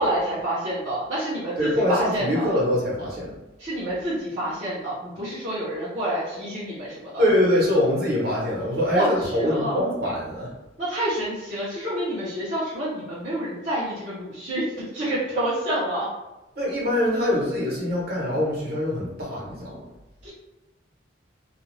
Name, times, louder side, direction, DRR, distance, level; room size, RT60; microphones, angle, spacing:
voice 1, 0.0-2.5 3.6-7.2 8.9-9.8 10.8-16.1 20.2-20.3, right 1 dB, 40° right, -11 dB, 0.8 m, -28 dB
voice 2, 1.6-3.3 7.2-10.5 16.6-19.8, left 1 dB, 55° right, -5 dB, 1.1 m, -24 dB
2.4 x 2.4 x 3.2 m, 1.0 s
head